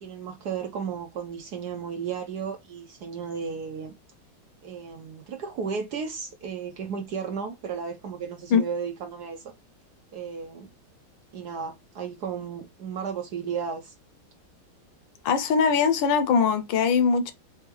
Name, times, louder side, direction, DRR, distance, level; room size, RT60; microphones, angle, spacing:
voice 1, 0.0-3.9 4.6-9.5 10.1-10.7 11.3-13.9, right 6 dB, 65° right, 1.0 m, -34 dB
voice 2, 15.2-17.3, left 6 dB, 75° left, 1.2 m, -21 dB
4.4 x 3.5 x 3.0 m
omnidirectional pair, 2.2 m